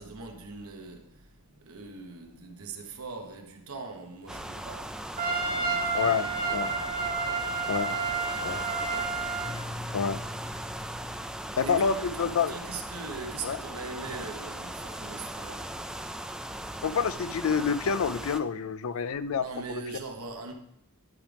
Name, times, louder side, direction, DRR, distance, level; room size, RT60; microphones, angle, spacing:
voice 1, 0.0-5.0 5.3-6.8 8.3-9.3 11.6-15.8 19.4-20.5, right 4 dB, 80° right, 1.3 m, -42 dB
sound 1, 4.3-18.4, right 1 dB, 5° right, 0.3 m, -39 dB
Trumpet, 5.2-9.6, right 4 dB, 40° right, 1.4 m, -30 dB
voice 2, 5.9-6.7 7.7-8.0 8.4-8.6 9.9-10.2 11.6-12.5 13.4-13.6 16.8-19.4, left 6 dB, 65° left, 0.4 m, -27 dB
Keyboard (musical), 9.4-12.5, left 2 dB, 45° left, 1.1 m, -43 dB
11.5 x 5.1 x 3.4 m
head